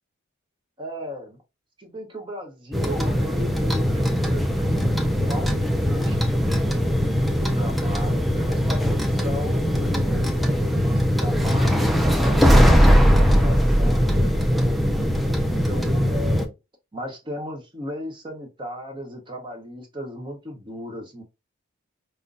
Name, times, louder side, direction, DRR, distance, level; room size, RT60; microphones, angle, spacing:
voice 1, 0.8-1.4 1.8-6.4 7.0-10.4 10.9-15.0 15.5-16.5 16.9-21.2, left 1 dB, 25° right, 1.0 m, -36 dB
sound 1, 2.7-16.4, equal, ahead, 0.4 m, -20 dB
5.2 x 2.2 x 2.4 m
head